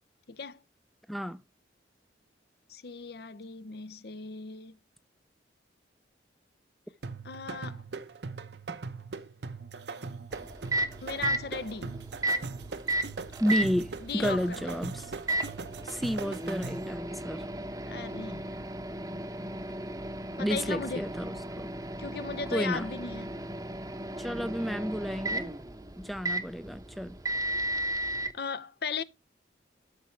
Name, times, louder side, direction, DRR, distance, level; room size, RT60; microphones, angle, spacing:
voice 1, 0.3-0.6 2.7-4.8 7.2-7.8 11.0-12.0 14.0-14.8 17.9-18.6 20.4-21.1 22.0-23.3 28.3-29.0, left 5 dB, 55° left, 0.6 m, -37 dB
voice 2, 1.1-1.4 13.4-15.1 15.8-17.5 20.4-21.7 22.5-22.9 24.2-25.5 26.0-27.2, equal, ahead, 0.4 m, -31 dB
sound 1, 7.0-17.0, right 4 dB, 65° right, 0.8 m, -40 dB
Microwave oven, 10.3-28.3, right 1 dB, 20° right, 0.8 m, -35 dB
13.0 x 7.1 x 3.3 m
head